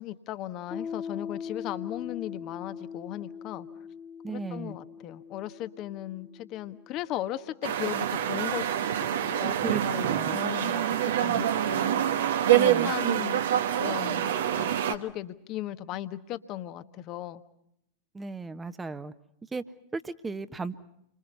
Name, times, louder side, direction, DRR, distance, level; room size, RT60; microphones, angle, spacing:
voice 1, 0.0-3.7 4.3-8.7 9.0-12.1 12.5-13.4 13.8-17.4, left 13 dB, 40° left, 11 dB, 1.4 m, -37 dB
Piano, 0.7-8.0, left 6 dB, 20° left, 1.4 m, -41 dB
voice 2, 4.2-4.8 9.6-10.4 12.5-12.9 18.1-19.1 19.5-19.6 19.9-20.8, right 3 dB, 10° right, 12 dB, 1.3 m, -35 dB
sound 1, 7.6-15.0, right 10 dB, 60° right, 1.4 m, -26 dB
29.0 x 25.0 x 5.6 m, 0.76 s
figure-of-eight pair, 90°, 0 cm